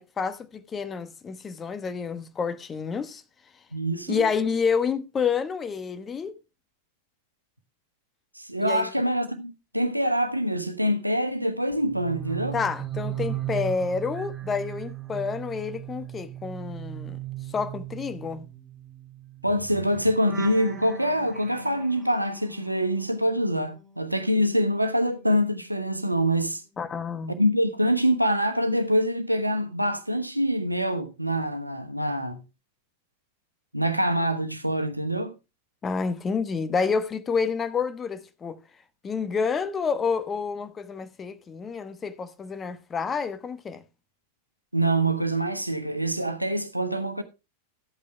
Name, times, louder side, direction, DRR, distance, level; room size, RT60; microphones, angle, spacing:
voice 1, 0.0-3.2 4.1-6.3 8.6-8.9 12.5-17.2 17.5-18.4 26.8-27.4 35.8-38.6 39.0-43.8, left 5 dB, 20° left, 1.1 m, -29 dB
voice 2, 3.7-4.3 8.4-12.6 19.4-26.6 27.4-32.4 33.7-35.3 44.7-47.2, equal, 85° right, 1.1 m, -25 dB
sound 1, 11.8-24.1 24.4-26.5 26.8-27.1, right 10 dB, 10° right, 2.5 m, -38 dB
13.0 x 8.5 x 3.3 m
figure-of-eight pair, 90°, 0 cm